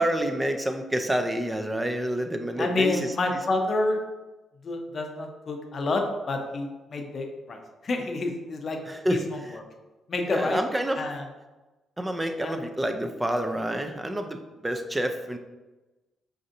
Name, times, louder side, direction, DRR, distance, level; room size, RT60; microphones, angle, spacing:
voice 1, 0.0-3.1 8.9-9.2 10.3-11.0 12.0-15.4, right 1 dB, 15° right, 6 dB, 0.4 m, -28 dB
voice 2, 2.6-4.0 4.6-8.8 9.1-9.6 10.1-10.6 11.0-11.2 12.4-12.6, left 2 dB, 45° left, 3 dB, 0.6 m, -29 dB
5.3 x 2.6 x 2.5 m, 1.1 s
cardioid pair, 90°, 0 cm